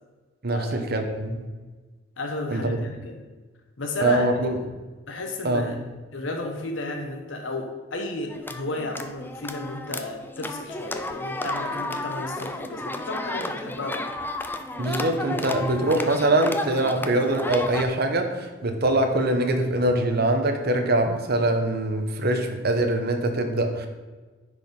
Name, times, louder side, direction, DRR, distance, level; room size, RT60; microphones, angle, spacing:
voice 1, 0.4-1.4 2.5-2.8 4.0-4.5 5.4-5.7 14.8-23.9, right 1 dB, 55° right, 5 dB, 1.1 m, -23 dB
voice 2, 2.2-3.2 3.8-4.3 5.1-5.8 6.1-14.1, left 2 dB, 75° left, 3 dB, 1.1 m, -33 dB
sound 1, 8.3-17.8, left 2 dB, 10° left, 0.5 m, -32 dB
9.8 x 4.9 x 5.4 m, 1.3 s
head